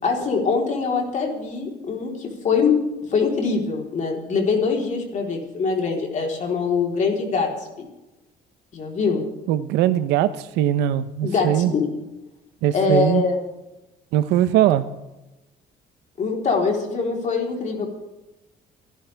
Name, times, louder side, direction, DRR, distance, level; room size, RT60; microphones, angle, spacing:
voice 1, 0.0-2.7 3.1-7.7 8.7-9.2 11.2-11.9 12.7-13.4 16.2-17.9, left 5 dB, 45° left, 1 dB, 3.8 m, -23 dB
voice 2, 9.5-11.7 12.6-13.2 14.1-14.9, right 12 dB, 90° right, 14 dB, 0.8 m, -20 dB
28.5 x 11.5 x 3.5 m, 1.0 s
cardioid pair, 110°, 17 cm